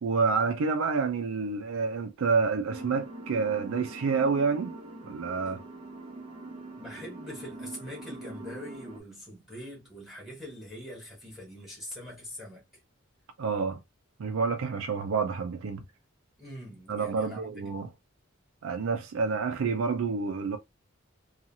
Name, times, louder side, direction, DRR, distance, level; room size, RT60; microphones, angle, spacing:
voice 1, 0.0-4.7 5.0-5.6 13.4-13.8 14.2-15.8 16.9-17.9 18.6-20.6, right 5 dB, 75° right, 0.4 m, -28 dB
sound 1, 2.7-9.0, right 2 dB, 25° right, 0.5 m, -43 dB
voice 2, 6.8-12.6 16.4-17.6, left 1 dB, ahead, 1.1 m, -43 dB
2.8 x 2.4 x 2.6 m
head